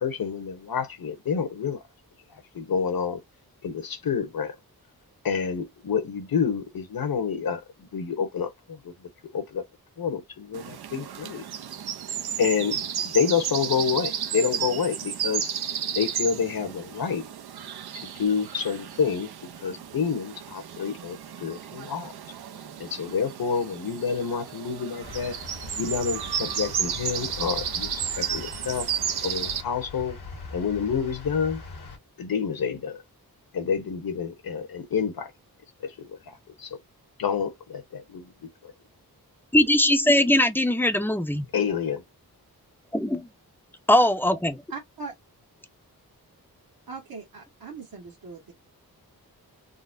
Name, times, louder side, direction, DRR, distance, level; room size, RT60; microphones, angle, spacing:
voice 1, 0.0-1.8 2.5-3.2 3.6-4.6 5.2-8.9 9.3-9.6 10.0-11.4 12.4-12.8 13.1-15.5 15.9-17.2 18.0-19.3 19.6-22.1 22.8-25.3 25.8-28.9 29.2-30.2 30.5-31.6 32.2-33.0 33.5-35.3 35.8-36.7 37.2-38.2 38.6-38.7 41.5-42.0, left 6 dB, 65° left, 0.9 m, -28 dB
sound 1, 10.5-29.6, right 8 dB, 80° right, 0.6 m, -33 dB
sound 2, 25.0-32.0, left 3 dB, 90° left, 1.4 m, -41 dB
voice 2, 39.5-41.5 42.9-43.3 43.9-44.5, left 1 dB, 5° left, 0.5 m, -20 dB
voice 3, 44.7-45.1 46.9-48.5, right 4 dB, 65° right, 1.2 m, -39 dB
3.8 x 2.1 x 2.5 m
wide cardioid pair, 95°, 38 cm